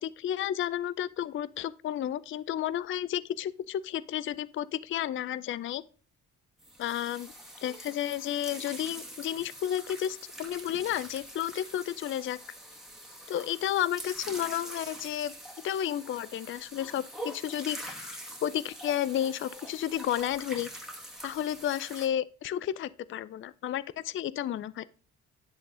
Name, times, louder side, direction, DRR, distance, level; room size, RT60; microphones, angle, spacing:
voice 1, 0.0-5.8 6.8-7.3 7.6-12.4 13.3-15.3 15.6-20.7 21.2-24.8, left 11 dB, 45° left, 0.4 m, -32 dB
sound 1, 6.6-22.1, equal, ahead, 1.8 m, -44 dB
10.5 x 3.9 x 3.7 m
cardioid pair, 90°, 30 cm